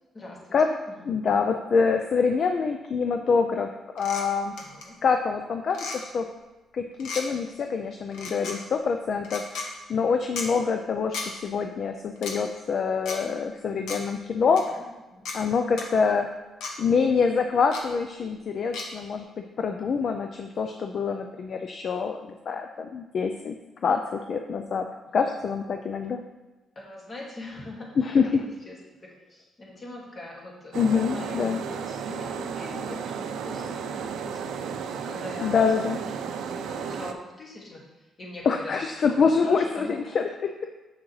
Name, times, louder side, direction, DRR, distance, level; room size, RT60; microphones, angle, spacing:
voice 1, 0.1-1.2 4.6-5.0 14.8-14.9 15.1-15.3 25.1-25.2 26.8-36.0 36.4-37.8 38.2-38.7 39.1-40.0, left 2 dB, 35° left, -3 dB, 2.1 m, -42 dB
voice 2, 1.0-3.7 3.9-4.5 5.0-6.2 6.7-9.6 9.9-14.6 15.3-16.3 16.8-19.2 19.6-23.5 23.8-24.0 24.3-24.8 25.1-26.2 28.0-28.3 30.7-31.6 35.4-36.0 38.5-40.5, left 5 dB, 55° left, 5 dB, 0.5 m, -25 dB
sound 1, 4.0-4.2 4.6-4.8 5.7-6.0 7.0-7.2 8.1-8.6 9.2-9.7 10.4-10.5 11.1-11.3 12.2-12.3 13.0-13.2 13.9-14.0 14.6-14.7 15.2-15.4 15.8-15.9 16.6-16.7 17.7-17.8 18.7-18.9, left 4 dB, 85° left, 1.0 m, -34 dB
sound 2, 30.7-37.1, right 6 dB, 80° right, 0.5 m, -33 dB
7.2 x 6.1 x 3.2 m, 1.1 s
cardioid pair, 90°, 0 cm